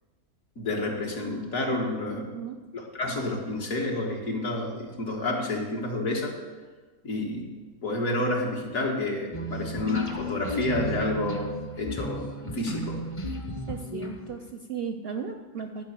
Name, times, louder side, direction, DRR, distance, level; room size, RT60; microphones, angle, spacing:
voice 1, 0.6-2.4 2.7-6.4 7.0-7.5 7.8-13.0, left 2 dB, 65° left, 0 dB, 1.9 m, -29 dB
voice 2, 2.2-2.6 13.7-15.8, right 6 dB, 65° right, 6 dB, 0.6 m, -36 dB
sound 1, 9.3-14.5, equal, 30° left, 0.7 m, -34 dB
10.5 x 5.4 x 7.2 m, 1.4 s
omnidirectional pair, 1.5 m